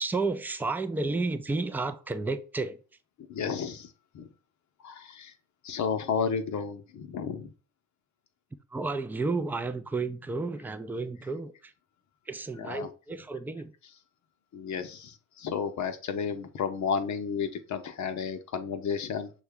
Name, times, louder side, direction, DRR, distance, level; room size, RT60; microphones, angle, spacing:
voice 1, 0.0-2.8 8.7-11.7 12.2-13.7, right 3 dB, 5° right, 0.4 m, -32 dB
voice 2, 3.3-4.3 4.8-5.3 5.6-7.5 12.7-12.9 14.5-19.3, left 6 dB, 45° left, 0.7 m, -32 dB
6.0 x 2.3 x 3.5 m
hypercardioid pair, 65°, 42 cm